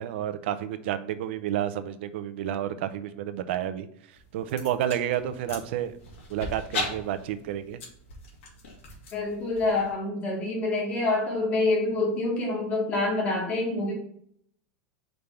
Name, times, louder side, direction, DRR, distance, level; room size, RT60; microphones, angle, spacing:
voice 1, 0.0-3.9 4.3-5.9 6.3-7.8, right 11 dB, 65° right, 11 dB, 0.6 m, -30 dB
sound 1, 4.1-9.9, left 2 dB, 80° left, 2.1 m, -39 dB
voice 2, 9.1-13.9, left 2 dB, 20° left, -1 dB, 1.5 m, -26 dB
5.3 x 3.4 x 5.7 m, 0.68 s
supercardioid pair, 170°, 7 cm